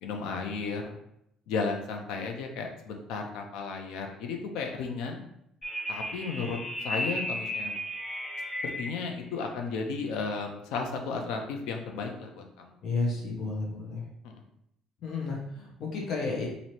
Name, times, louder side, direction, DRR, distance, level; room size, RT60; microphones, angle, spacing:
voice 1, 0.0-1.0 1.5-5.2 5.9-7.8 8.6-12.7 14.2-14.4, left 4 dB, 85° left, 3 dB, 0.6 m, -34 dB
sound 1, 5.6-9.1, equal, 20° left, 1.4 m, -34 dB
voice 2, 12.8-14.1 15.0-16.5, left 3 dB, 45° left, -3 dB, 0.8 m, -32 dB
3.1 x 2.7 x 4.2 m, 0.77 s
cardioid pair, 155°, 0 cm